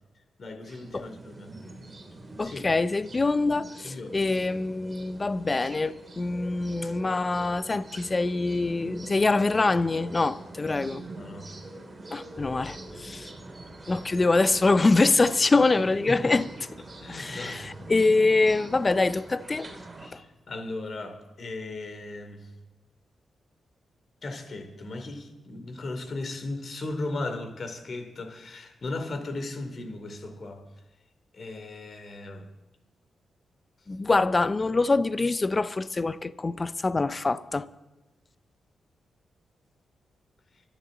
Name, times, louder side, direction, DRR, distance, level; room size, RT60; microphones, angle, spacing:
voice 1, 0.4-1.6 2.4-2.6 3.8-4.2 11.2-11.5 16.1-16.2 17.0-17.9 20.0-22.5 24.2-30.6 31.3-32.5, left 2 dB, 50° left, 2.8 m, -37 dB
sound 1, 0.6-20.1, right 2 dB, 30° right, 2.9 m, -44 dB
voice 2, 2.4-11.0 12.1-13.3 13.9-16.5 17.1-19.7 33.9-37.7, left 3 dB, 30° left, 0.6 m, -24 dB
25.0 x 11.5 x 3.9 m
cardioid pair, 105°, 0 cm